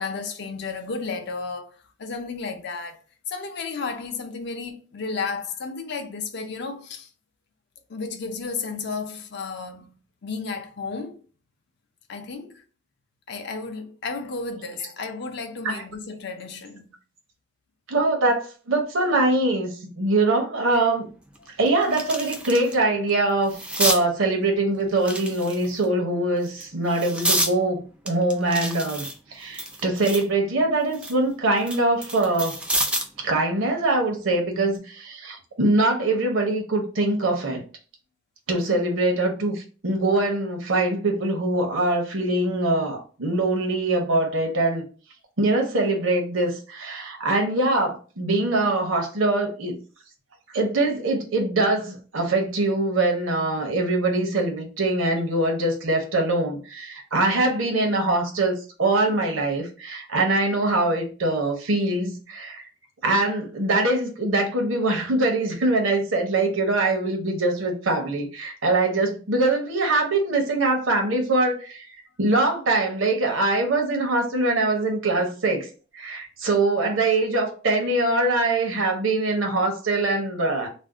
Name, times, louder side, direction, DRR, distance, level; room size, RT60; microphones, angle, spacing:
voice 1, 0.0-3.0 3.3-7.1 7.9-9.9 10.2-11.2 12.1-12.6 13.3-17.0 21.4-21.5 38.5-38.8, left 4 dB, 60° left, 0.5 m, -33 dB
voice 2, 17.9-21.1 21.6-32.6 33.2-37.6 38.5-44.8 45.4-49.8 50.5-62.7 63.0-75.7 75.9-80.7, right 2 dB, 80° right, 0.8 m, -23 dB
sound 1, 20.7-20.8 21.3-22.7 23.1-24.0 25.0-25.8 26.4-27.5 28.1-30.3 30.7-33.2 34.5-34.8, right 1 dB, 5° right, 0.3 m, -28 dB
2.5 x 2.0 x 3.5 m
head